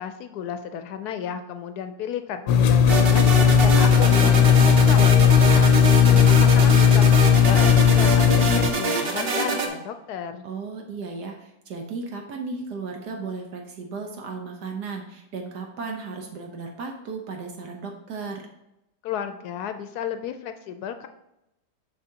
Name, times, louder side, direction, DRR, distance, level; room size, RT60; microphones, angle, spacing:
voice 1, 0.0-3.2 3.6-5.7 6.1-10.5 19.0-21.1, left 8 dB, 75° left, 8 dB, 1.1 m, -33 dB
sound 1, 2.5-8.7, left 8 dB, 90° left, 1.2 m, -16 dB
sound 2, 2.9-9.7, right 2 dB, 45° right, 0.9 m, -25 dB
voice 2, 10.4-18.5, right 4 dB, 75° right, 2 dB, 1.4 m, -35 dB
7.9 x 5.8 x 2.8 m, 0.88 s
omnidirectional pair, 1.8 m